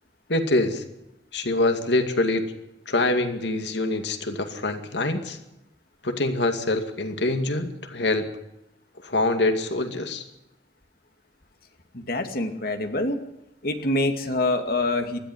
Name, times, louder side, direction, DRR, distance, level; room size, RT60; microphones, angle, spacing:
voice 1, 0.3-0.8 1.3-2.5 2.9-5.4 6.0-8.3 9.0-10.2, left 2 dB, 75° left, 6 dB, 2.2 m, -25 dB
voice 2, 11.9-13.2 13.6-15.2, left 2 dB, 55° left, 5 dB, 2.4 m, -25 dB
20.0 x 14.0 x 9.7 m, 0.89 s
head